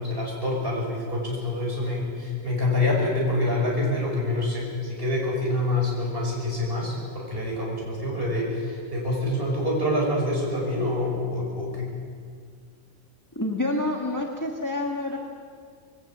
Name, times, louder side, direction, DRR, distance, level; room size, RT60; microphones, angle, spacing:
voice 1, 0.0-11.9, left 1 dB, 45° right, -3 dB, 6.0 m, -26 dB
voice 2, 13.3-15.2, left 2 dB, 15° left, 1 dB, 1.5 m, -28 dB
21.0 x 18.0 x 7.4 m, 2.1 s
omnidirectional pair, 1.4 m